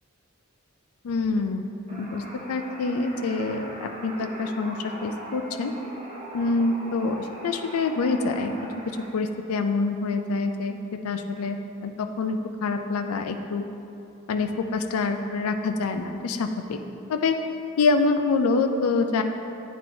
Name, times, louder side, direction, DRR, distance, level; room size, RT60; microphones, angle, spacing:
voice 1, 1.0-2.2 2.5-5.7 6.3-8.5 9.1-10.8 11.0-11.6 11.8-13.6 14.3-16.8 17.1-17.4 17.8-19.2, left 3 dB, 90° left, 6 dB, 0.4 m, -26 dB
sound 1, 1.9-9.1, equal, 30° right, 0.7 m, -40 dB
9.2 x 4.4 x 2.7 m, 2.7 s
head